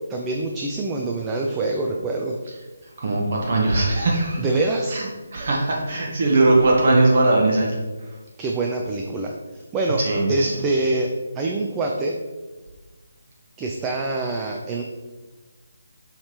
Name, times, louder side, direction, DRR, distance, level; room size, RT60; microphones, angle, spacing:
voice 1, 0.1-2.4 4.4-5.0 8.4-12.2 13.6-14.8, right 2 dB, 15° right, 1 dB, 0.3 m, -25 dB
voice 2, 3.0-4.4 4.9-5.0 5.3-7.8 10.0-10.5, right 2 dB, 45° right, -2 dB, 0.9 m, -19 dB
5.6 x 3.3 x 2.9 m, 1.3 s
figure-of-eight pair, 150°, 0 cm